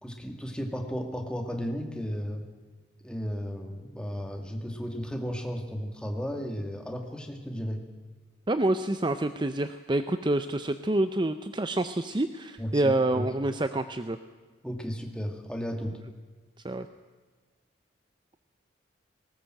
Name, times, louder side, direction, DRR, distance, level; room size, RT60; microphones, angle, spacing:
voice 1, 0.0-2.5 3.0-7.8 12.6-13.3 14.6-16.0, equal, 5° left, 3 dB, 2.1 m, -34 dB
voice 2, 8.5-14.2 16.6-16.9, right 2 dB, 25° right, 10 dB, 0.6 m, -27 dB
19.0 x 19.0 x 7.7 m, 1.4 s
head